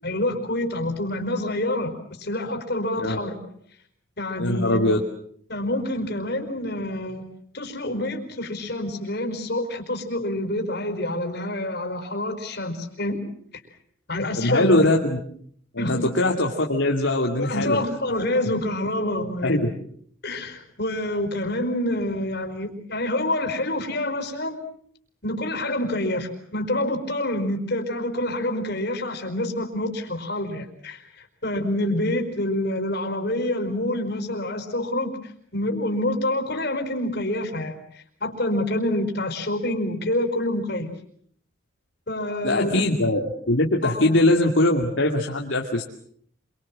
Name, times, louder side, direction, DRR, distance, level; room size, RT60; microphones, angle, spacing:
voice 1, 0.0-3.4 4.2-4.9 5.5-7.2 7.5-13.2 14.1-14.9 15.8-16.1 17.4-19.6 20.2-24.6 25.2-41.0 42.1-42.8 43.8-44.1, left 1 dB, 50° left, 5 dB, 4.8 m, -27 dB
voice 2, 4.4-5.0 14.4-15.2 15.7-17.8 19.4-19.7 42.4-45.8, left 1 dB, 65° left, 0 dB, 2.5 m, -21 dB
27.0 x 24.5 x 7.5 m, 0.62 s
head